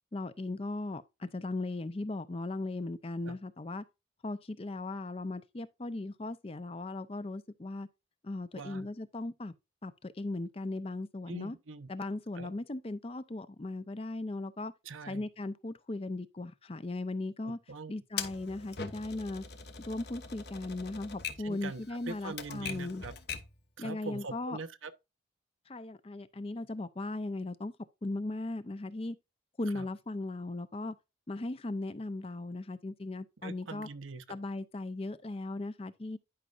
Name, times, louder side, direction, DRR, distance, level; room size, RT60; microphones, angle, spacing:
voice 1, 0.1-3.8 4.2-7.9 8.2-9.5 9.8-11.6 11.9-14.7 15.1-17.6 17.9-19.4 19.8-23.0 23.8-24.6 25.7-27.7 28.0-29.2 29.6-31.0 31.3-33.9 34.3-36.2, left 2 dB, 30° left, 0.5 m, -37 dB
voice 2, 8.5-8.9 11.3-11.9 12.4-12.5 14.9-15.2 17.4-17.9 21.4-23.1 23.8-24.9 29.7-29.8 33.4-34.2, right 3 dB, 90° right, 0.9 m, -43 dB
Typewriter, 18.2-23.6, left 6 dB, 55° left, 1.1 m, -42 dB
11.0 x 5.4 x 2.5 m
head